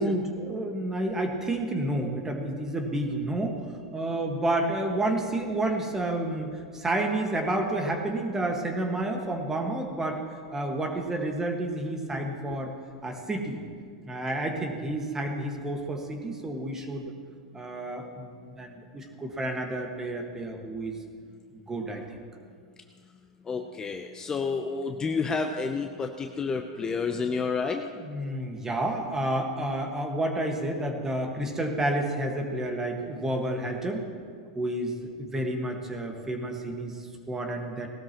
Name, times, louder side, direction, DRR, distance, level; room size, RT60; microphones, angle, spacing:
voice 1, 0.0-3.6 3.9-10.2 10.5-12.7 13.0-13.6 14.1-17.1 17.5-21.0 21.5-22.2 27.9-34.1 34.6-37.9, right 1 dB, 15° right, 3 dB, 1.6 m, -30 dB
voice 2, 23.5-27.9, left 4 dB, 20° left, 4 dB, 0.7 m, -30 dB
18.5 x 13.0 x 3.0 m, 2.1 s
hypercardioid pair, 115°, 3 cm